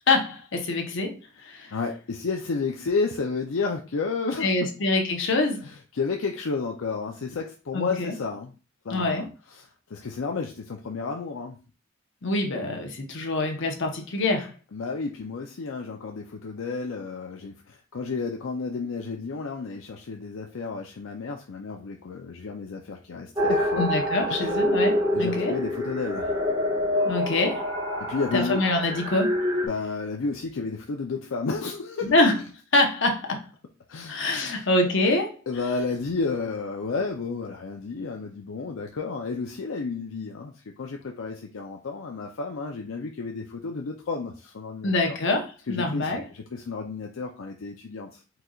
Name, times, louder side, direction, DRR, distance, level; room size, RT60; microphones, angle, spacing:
voice 1, 0.1-1.7 4.4-5.7 7.7-8.1 8.9-9.3 12.2-14.5 23.8-25.5 27.0-27.7 28.3-29.4 32.0-32.4 32.7-33.5 34.1-35.4 44.8-46.2, left 2 dB, 65° left, 1.0 m, -25 dB
voice 2, 1.7-4.5 5.6-8.5 8.8-11.6 14.7-23.8 24.3-24.5 25.1-26.3 28.1-28.6 29.6-32.1 33.9-34.7 35.5-45.2 45.7-48.2, left 4 dB, 80° left, 0.5 m, -32 dB
sound 1, 23.4-29.7, left 1 dB, 20° right, 1.4 m, -26 dB
4.6 x 3.8 x 2.4 m
head